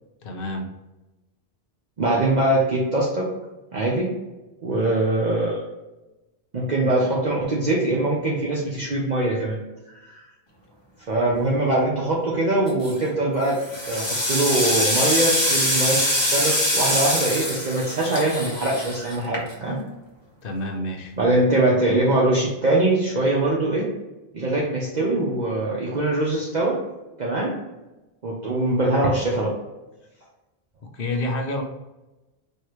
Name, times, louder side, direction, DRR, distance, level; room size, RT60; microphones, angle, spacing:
voice 1, 0.2-0.7 20.4-21.1 30.9-31.6, left 1 dB, 60° left, 2 dB, 0.9 m, -28 dB
voice 2, 2.0-3.3 3.7-4.1 4.6-5.6 6.5-9.6 10.0-10.2 11.1-13.6 13.9-19.8 21.2-23.9 24.3-26.8 27.2-27.5 28.2-29.5, right 2 dB, 45° right, -4 dB, 0.8 m, -22 dB
sound 1, 12.7-13.1 13.5-19.8, equal, 25° left, 1.0 m, -24 dB
4.6 x 3.2 x 3.0 m, 1.0 s
omnidirectional pair, 1.1 m